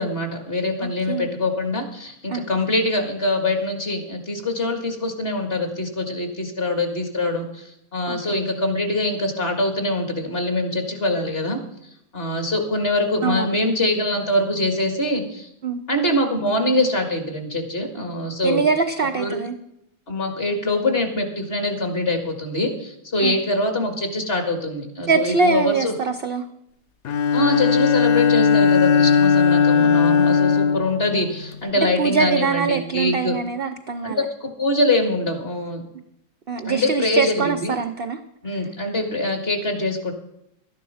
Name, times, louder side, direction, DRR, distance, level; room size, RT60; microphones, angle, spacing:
voice 1, 0.0-11.6 12.1-15.5 15.9-18.6 19.2-19.4 20.1-25.9 27.3-33.4 34.0-35.8 36.6-37.8 38.4-40.1, left 2 dB, 35° left, 4 dB, 2.0 m, -24 dB
voice 2, 8.1-8.4 13.2-13.6 15.6-15.8 18.4-19.6 23.2-23.3 25.1-26.5 31.7-34.2 36.5-38.2, right 5 dB, 65° right, 10 dB, 0.5 m, -23 dB
Bowed string instrument, 27.1-31.7, left 6 dB, 70° left, 0.5 m, -18 dB
12.5 x 10.5 x 5.6 m, 0.79 s
omnidirectional pair, 1.8 m